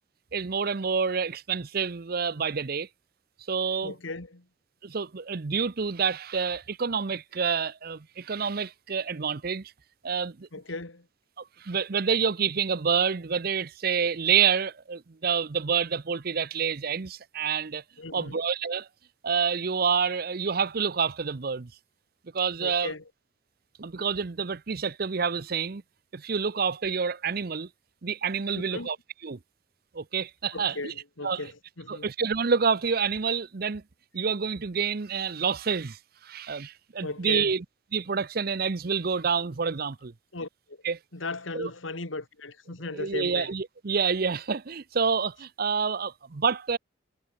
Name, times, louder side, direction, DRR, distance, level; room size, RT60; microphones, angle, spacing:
voice 1, 0.3-2.9 3.5-3.9 4.8-9.7 10.0-10.5 11.6-17.8 18.1-18.9 19.2-21.7 22.3-22.9 23.8-25.8 26.1-27.7 28.0-29.0 29.2-29.4 29.9-30.9 31.2-31.4 31.9-33.8 34.1-36.0 36.2-37.6 37.9-40.1 40.8-41.0 41.5-41.7 42.9-46.8, right 6 dB, 50° right, 0.7 m, -28 dB
voice 2, 3.8-4.4 10.5-11.1 18.0-18.4 22.6-23.0 28.5-28.9 30.5-32.1 37.0-37.6 40.3-40.8 41.1-43.5, left 3 dB, 90° left, 2.3 m, -37 dB
head